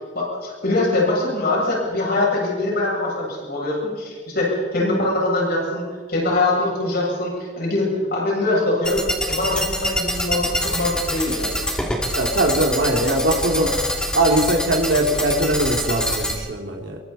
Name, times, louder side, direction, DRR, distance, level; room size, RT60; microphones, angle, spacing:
voice 1, 0.1-5.8 6.1-11.6, left 2 dB, 55° left, -4 dB, 7.8 m, -23 dB
sound 1, 8.8-16.3, equal, 5° left, 2.9 m, -25 dB
voice 2, 12.1-13.7 14.1-17.0, right 1 dB, 70° right, 1 dB, 3.0 m, -21 dB
26.0 x 24.0 x 4.3 m, 1.5 s
head